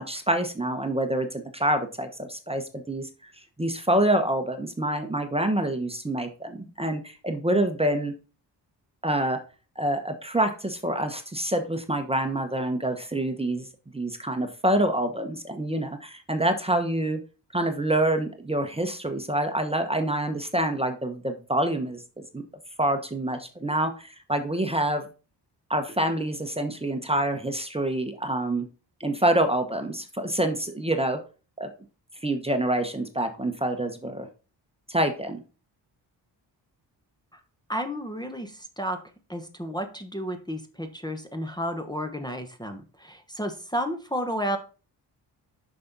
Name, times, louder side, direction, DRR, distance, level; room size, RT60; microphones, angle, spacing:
voice 1, 0.0-3.1 3.6-8.1 9.0-9.4 9.8-13.7 13.9-17.2 17.5-22.4 22.8-25.1 25.7-28.7 29.0-31.2 31.6-31.7 32.2-34.3 34.9-35.4, right 1 dB, 15° right, 6 dB, 1.0 m, -26 dB
voice 2, 37.7-39.0 39.3-44.6, equal, 10° left, 6 dB, 1.0 m, -32 dB
6.1 x 6.0 x 4.0 m, 0.34 s
cardioid pair, 70°, 43 cm